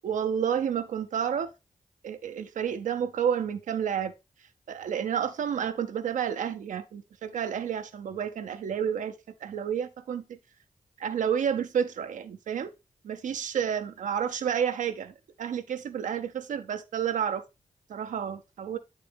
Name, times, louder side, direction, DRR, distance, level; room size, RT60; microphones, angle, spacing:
voice 1, 0.0-1.5 2.0-4.1 4.7-9.1 9.4-10.4 11.0-12.7 13.0-17.4 17.9-18.8, right 8 dB, 80° right, 0.6 m, -30 dB
8.5 x 4.0 x 3.4 m
supercardioid pair, 40°, 13 cm